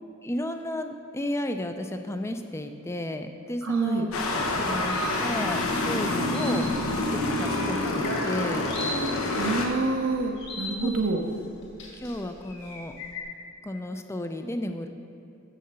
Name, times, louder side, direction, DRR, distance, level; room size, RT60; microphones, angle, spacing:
voice 1, 0.2-6.7 7.0-9.0 10.8-10.9 11.9-13.0 13.6-14.9, left 1 dB, 10° left, 7 dB, 0.4 m, -33 dB
voice 2, 3.6-4.0 9.3-11.2, right 3 dB, 75° right, 3 dB, 0.7 m, -27 dB
sound 1, 4.1-9.7, left 2 dB, 85° left, 1.1 m, -27 dB
sound 2, 4.1-13.2, left 2 dB, 55° left, 2.2 m, -40 dB
7.6 x 6.5 x 6.8 m, 2.7 s
head